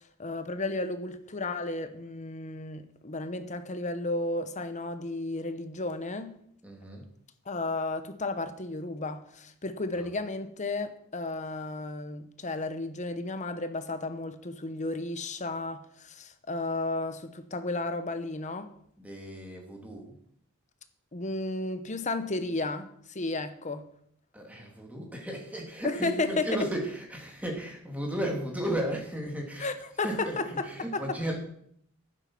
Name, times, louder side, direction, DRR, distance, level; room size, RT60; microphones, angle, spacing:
voice 1, 0.2-6.4 7.5-18.7 21.1-23.9 25.8-26.6 29.6-30.7 30.9-31.0, left 2 dB, 35° left, 1.0 m, -33 dB
voice 2, 6.6-7.1 9.9-10.1 19.0-20.1 24.3-29.7 30.0-31.4, right 1 dB, 5° right, 2.7 m, -35 dB
11.0 x 9.3 x 6.1 m
head